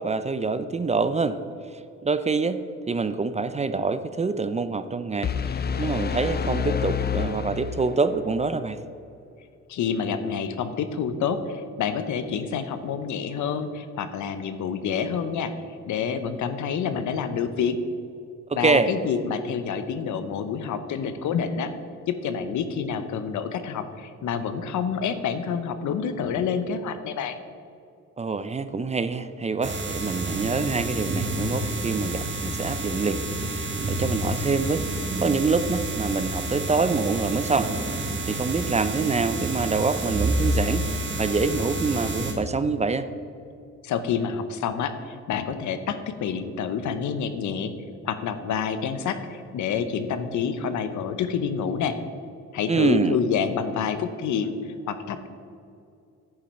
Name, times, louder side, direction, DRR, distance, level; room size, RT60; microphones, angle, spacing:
voice 1, 0.0-1.4 2.0-2.6 2.9-5.3 5.8-8.8 18.5-18.9 28.2-34.9 35.2-37.7 38.3-40.9 41.2-43.1 52.7-53.2, right 4 dB, 20° right, 12 dB, 0.5 m, -25 dB
sound 1, 5.2-8.2, left 7 dB, 35° left, 0.6 m, -28 dB
voice 2, 9.7-15.5 15.9-17.8 18.5-21.7 22.1-27.4 43.8-47.7 48.0-52.0 52.5-55.3, left 7 dB, 75° left, 10 dB, 0.9 m, -28 dB
sound 2, 29.6-42.3, right 2 dB, 40° right, 1.8 m, -29 dB
9.8 x 7.4 x 5.4 m, 2.5 s
cardioid pair, 90°, 30 cm